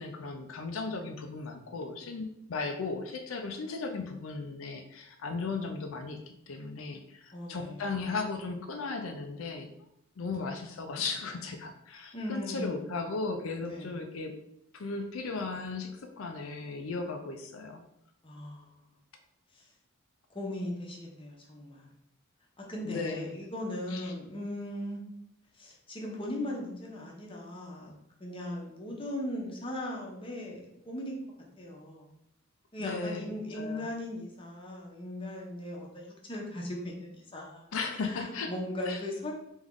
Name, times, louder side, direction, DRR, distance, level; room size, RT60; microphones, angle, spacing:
voice 1, 0.0-9.7 10.2-14.3 14.7-17.8 22.8-23.2 23.9-24.1 32.8-33.9 37.7-38.5 38.9-39.0, left 4 dB, 70° left, 5 dB, 0.5 m, -36 dB
voice 2, 7.3-8.0 12.1-12.9 13.6-13.9 18.2-18.8 19.5-19.6 20.3-21.9 22.6-25.0 25.6-27.9 28.2-31.2 31.6-32.1 32.7-37.7 38.0-39.3, left 1 dB, 25° left, -2 dB, 0.9 m, -38 dB
3.5 x 3.0 x 3.7 m, 0.77 s
head